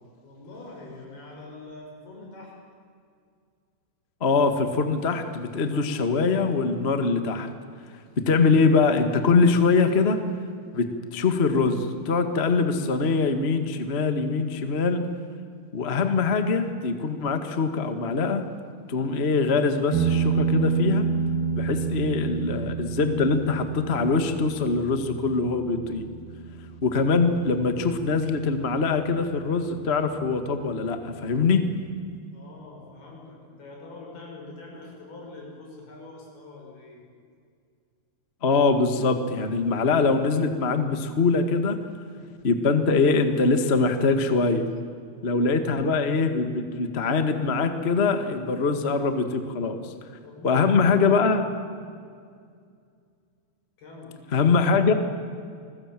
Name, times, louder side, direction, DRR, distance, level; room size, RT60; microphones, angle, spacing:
voice 1, 0.2-2.6 32.3-37.0 50.2-50.8 53.8-54.1, left 2 dB, 80° left, -1 dB, 8.6 m, -44 dB
voice 2, 4.2-7.5 8.2-10.2 10.7-10.9 11.1-15.0 15.7-18.4 18.9-21.0 21.6-26.1 26.8-31.6 38.4-41.8 42.4-44.6 45.2-49.8 50.4-51.4 54.3-54.9, left 4 dB, 50° left, 8 dB, 0.7 m, -23 dB
sound 1, 19.9-28.9, right 6 dB, 50° right, 2.4 m, -29 dB
29.0 x 21.0 x 9.2 m, 2.2 s
omnidirectional pair, 4.4 m